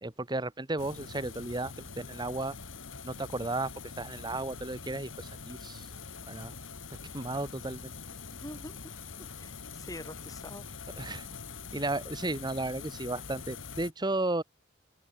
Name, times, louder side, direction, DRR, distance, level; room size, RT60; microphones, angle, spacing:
voice 1, 0.0-2.5 3.0-5.9 6.3-6.5 7.1-7.9 11.0-11.3 11.7-14.4, right 2 dB, 20° right, 1.4 m, -34 dB
sound 1, 0.8-13.9, left 5 dB, 80° left, 2.1 m, -44 dB
voice 2, 8.4-10.7, left 1 dB, 20° left, 4.7 m, -46 dB
open air
head